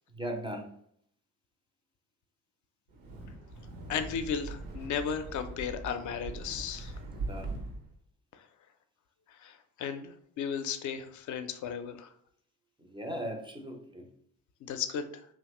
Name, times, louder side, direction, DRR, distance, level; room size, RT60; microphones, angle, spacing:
voice 1, 0.1-0.7 7.1-7.6 12.8-14.1, equal, 10° right, 3 dB, 0.4 m, -39 dB
Wind, 2.9-8.0, right 2 dB, 70° right, 0.7 m, -41 dB
voice 2, 3.9-6.9 8.3-8.4 9.3-12.1 14.6-15.3, left 7 dB, 45° left, 9 dB, 0.5 m, -35 dB
2.8 x 2.1 x 2.9 m, 0.66 s
hypercardioid pair, 50°, 44 cm